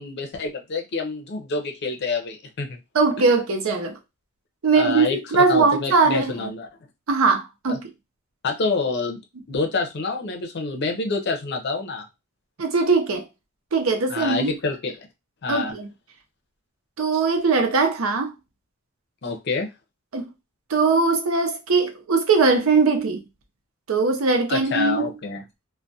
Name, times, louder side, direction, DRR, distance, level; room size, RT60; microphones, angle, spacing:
voice 1, 0.0-2.8 4.7-5.2 5.5-6.7 7.7-7.8 8.4-9.2 9.5-12.0 14.1-15.0 15.4-15.7 19.2-19.7 24.5-25.4, left 4 dB, 50° left, 0.5 m, -27 dB
voice 2, 2.9-4.0 4.6-6.5 7.1-7.9 12.6-13.3 13.7-14.5 15.5-15.9 17.0-18.3 20.1-20.3 20.7-23.2 23.9-25.2, right 4 dB, 75° right, 0.6 m, -20 dB
2.3 x 2.1 x 2.6 m
head